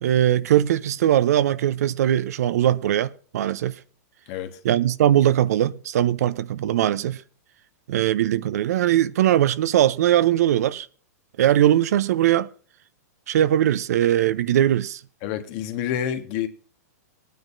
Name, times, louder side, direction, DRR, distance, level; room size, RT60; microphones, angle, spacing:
voice 1, 0.0-3.7 4.6-7.2 7.9-10.9 11.4-12.5 13.3-15.0, right 11 dB, 70° right, 0.7 m, -20 dB
voice 2, 4.3-4.6 15.2-16.5, left 10 dB, 50° left, 1.4 m, -28 dB
19.5 x 9.3 x 2.7 m
hypercardioid pair, 125°, 9 cm